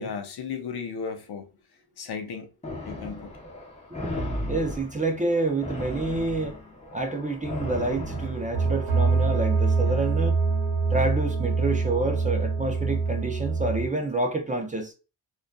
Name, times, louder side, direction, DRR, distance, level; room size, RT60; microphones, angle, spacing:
voice 1, 0.0-1.5 2.0-2.5 2.9-3.3 9.8-10.1, left 6 dB, 65° left, 0.6 m, -35 dB
sound 1, 2.6-9.1, left 1 dB, 15° left, 0.8 m, -36 dB
voice 2, 4.5-6.6 6.9-10.4 10.9-14.9, right 2 dB, 20° right, 0.4 m, -28 dB
sound 2, 7.5-13.9, right 4 dB, 85° right, 0.9 m, -25 dB
2.4 x 2.3 x 2.2 m
wide cardioid pair, 75°, 42 cm